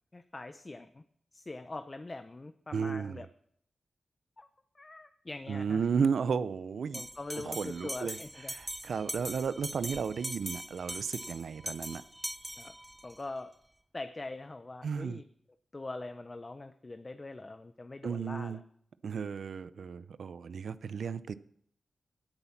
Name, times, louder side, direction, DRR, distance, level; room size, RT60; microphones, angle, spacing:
voice 1, 0.1-1.0 1.3-3.3 4.4-4.5 4.7-5.8 6.9-8.5 12.6-12.7 13.0-13.5 13.9-15.2 15.7-18.6, left 2 dB, 30° left, 9 dB, 0.7 m, -43 dB
voice 2, 2.7-3.2 5.5-7.0 7.3-8.2 8.5-12.0 14.8-15.2 18.0-18.6 19.0-21.3, right 6 dB, 75° right, 15 dB, 0.6 m, -33 dB
Bell, 6.9-13.2, right 1 dB, 10° right, 0.5 m, -41 dB
17.0 x 8.3 x 5.8 m, 0.67 s
wide cardioid pair, 90°, 0 cm